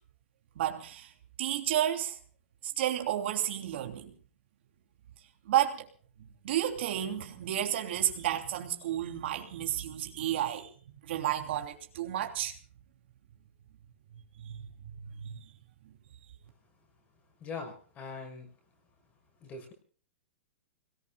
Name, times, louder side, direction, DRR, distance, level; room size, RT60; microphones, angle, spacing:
voice 1, 0.5-1.1 1.4-2.2 2.6-4.1 5.5-5.9 6.2-10.7 11.1-12.5 14.4-15.5 15.8-15.9, right 11 dB, 60° right, 3 dB, 3.1 m, -32 dB
voice 2, 17.4-18.5 19.4-19.7, left 4 dB, 25° left, 4 dB, 6.3 m, -41 dB
30.0 x 19.0 x 2.4 m, 0.43 s
hypercardioid pair, 160°, 7 cm